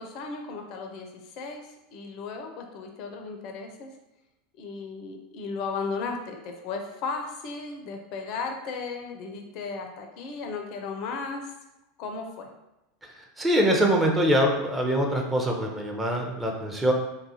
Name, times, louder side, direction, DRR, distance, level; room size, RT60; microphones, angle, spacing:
voice 1, 0.0-1.6 1.9-3.9 4.6-11.5 12.0-12.5, left 4 dB, 50° left, 3 dB, 0.4 m, -35 dB
voice 2, 13.4-16.9, equal, 10° right, 0 dB, 0.5 m, -23 dB
2.6 x 2.3 x 2.6 m, 0.94 s
figure-of-eight pair, 80°, 0 cm